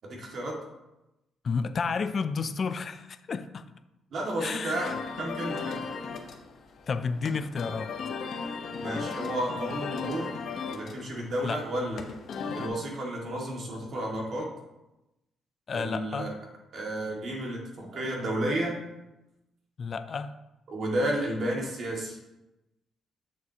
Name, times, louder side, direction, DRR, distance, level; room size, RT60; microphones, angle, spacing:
voice 1, 0.0-0.5 4.1-5.8 8.8-10.3 10.7-12.0 12.5-14.5 15.7-16.3 16.7-18.7 20.7-22.2, right 1 dB, 55° right, -1 dB, 2.0 m, -32 dB
voice 2, 1.4-3.7 4.4-4.9 6.9-7.9 11.4-11.6 15.7-16.3 19.8-20.3, left 5 dB, 45° left, 11 dB, 0.4 m, -31 dB
sound 1, 4.7-12.7, left 5 dB, 60° left, 0.9 m, -36 dB
7.1 x 6.5 x 2.9 m, 0.95 s
cardioid pair, 90°, 0 cm